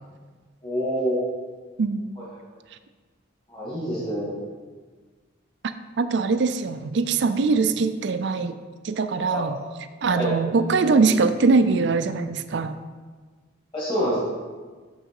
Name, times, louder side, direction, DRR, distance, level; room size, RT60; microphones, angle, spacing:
voice 1, 0.6-1.2 2.2-2.3 3.5-4.3 9.3-9.5 10.1-10.3 13.7-14.2, equal, 25° left, -8 dB, 2.3 m, -26 dB
voice 2, 1.8-2.1 6.0-8.6 8.8-9.6 10.0-12.8, right 4 dB, 60° right, 10 dB, 0.4 m, -22 dB
6.4 x 6.2 x 4.7 m, 1.4 s
head